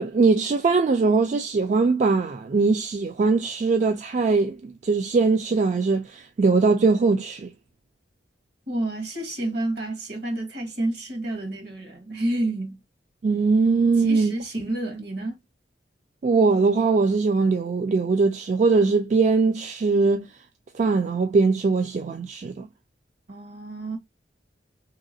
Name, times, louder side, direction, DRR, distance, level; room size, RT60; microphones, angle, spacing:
voice 1, 0.0-7.5 13.2-14.3 16.2-20.3 20.7-22.7, right 4 dB, 40° right, 0.3 m, -21 dB
voice 2, 8.7-12.8 14.0-15.4 23.3-24.0, right 1 dB, 65° right, 1.4 m, -29 dB
3.2 x 2.9 x 2.6 m
head